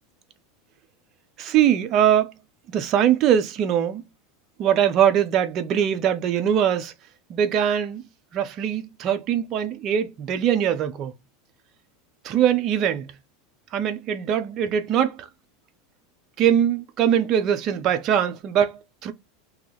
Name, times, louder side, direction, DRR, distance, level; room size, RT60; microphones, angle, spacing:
voice 1, 1.4-2.3 2.7-4.0 4.6-6.9 7.3-8.0 8.3-11.1 12.2-13.1 13.7-15.3 16.4-19.1, right 9 dB, 40° right, 0.6 m, -22 dB
2.9 x 2.4 x 3.8 m
supercardioid pair, 130°, 0 cm